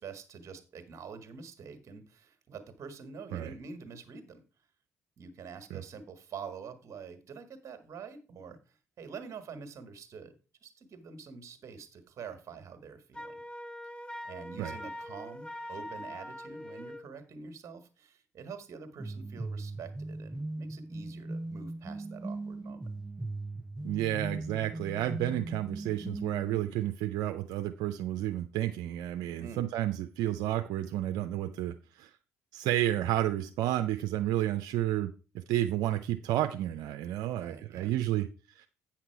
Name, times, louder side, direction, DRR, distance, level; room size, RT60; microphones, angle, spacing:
voice 1, 0.0-4.4 5.2-10.3 10.6-13.4 14.2-22.9 29.4-29.6 37.3-37.9, right 5 dB, 60° right, 9 dB, 1.7 m, -46 dB
Wind instrument woodwind instrument, 13.1-17.1, left 1 dB, 15° left, 0.9 m, -43 dB
sound 1, 19.0-26.6, right 2 dB, 15° right, 0.4 m, -39 dB
voice 2, 23.8-32.1 32.5-38.7, right 13 dB, 85° right, 7 dB, 0.5 m, -31 dB
8.7 x 5.9 x 4.6 m, 0.33 s
supercardioid pair, 70°, 6 cm